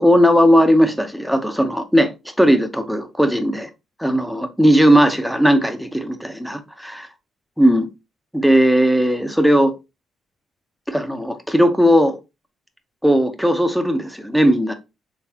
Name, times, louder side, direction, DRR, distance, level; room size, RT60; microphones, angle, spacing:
voice 1, 0.0-2.1 2.4-3.7 4.0-7.1 7.6-7.9 8.3-9.7 10.9-12.2 13.0-14.7, equal, ahead, 0.7 m, -17 dB
4.0 x 3.5 x 2.8 m
cardioid pair, 90°, 0 cm